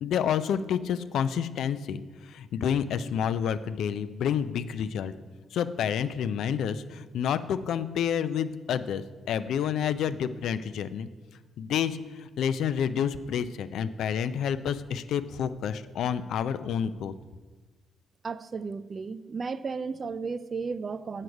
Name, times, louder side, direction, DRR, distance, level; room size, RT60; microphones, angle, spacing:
voice 1, 0.0-5.1 5.5-11.1 11.6-17.1, left 8 dB, 75° left, 12 dB, 0.4 m, -29 dB
voice 2, 18.2-21.2, right 5 dB, 40° right, 15 dB, 0.3 m, -34 dB
7.8 x 6.5 x 4.7 m, 1.3 s
cardioid pair, 90°, 0 cm